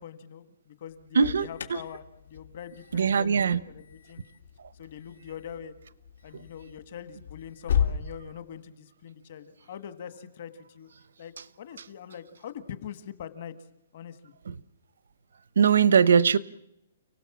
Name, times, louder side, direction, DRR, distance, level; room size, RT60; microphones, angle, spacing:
voice 1, 0.0-4.2 4.7-5.7 6.2-10.9 11.2-13.5 13.9-14.3, left 9 dB, 40° left, 1.7 m, -43 dB
Alarm, 0.9-8.0, left 8 dB, 70° left, 2.9 m, -35 dB
voice 2, 2.9-3.6 14.5-14.6 15.6-16.4, right 6 dB, 80° right, 1.0 m, -20 dB
30.0 x 18.0 x 7.4 m
hypercardioid pair, 175°, 0 cm